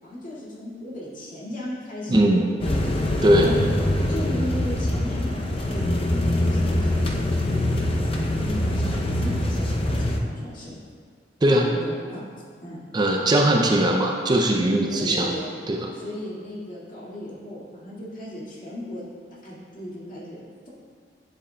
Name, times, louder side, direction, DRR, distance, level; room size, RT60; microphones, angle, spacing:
voice 1, 0.0-2.4 3.3-3.6 4.1-8.0 8.3-10.8 11.5-12.3 12.6-12.8 14.9-15.5 15.9-19.0 19.4-20.7, left 1 dB, 45° left, -7 dB, 2.0 m, -36 dB
voice 2, 2.1-2.5 3.2-3.5 11.4-11.7 12.9-15.3 15.7-15.9, right 1 dB, 25° right, 1 dB, 0.4 m, -20 dB
sound 1, 2.6-10.2, left 1 dB, 30° left, 0.5 m, -24 dB
10.0 x 7.1 x 2.2 m, 2.1 s
head